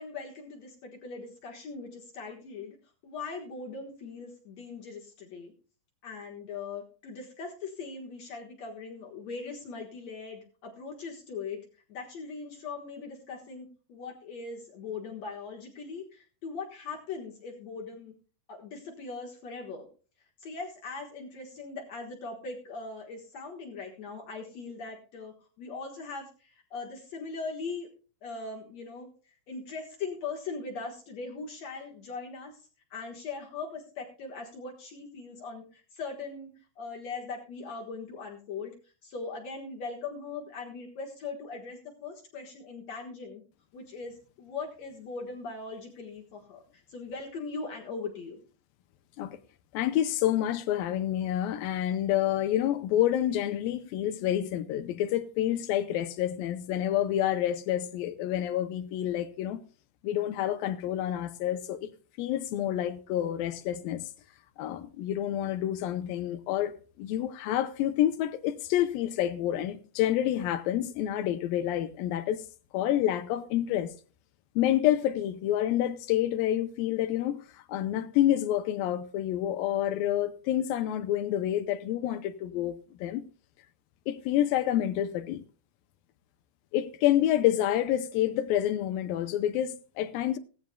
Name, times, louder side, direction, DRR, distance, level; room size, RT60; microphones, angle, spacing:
voice 1, 0.0-2.8 3.0-5.5 6.0-11.6 11.9-18.1 18.5-19.9 20.4-27.9 28.2-29.1 29.5-32.5 32.9-38.7 39.0-43.4 43.7-46.6 46.9-48.4, left 4 dB, 55° left, 2.2 m, -40 dB
voice 2, 49.7-59.6 60.0-61.9 62.2-64.0 64.6-66.7 67.0-72.4 72.7-73.9 74.6-77.4 77.7-82.8 83.0-83.2 84.1-85.4 86.7-90.4, left 12 dB, 75° left, 2.3 m, -28 dB
16.5 x 14.5 x 2.3 m
omnidirectional pair, 4.5 m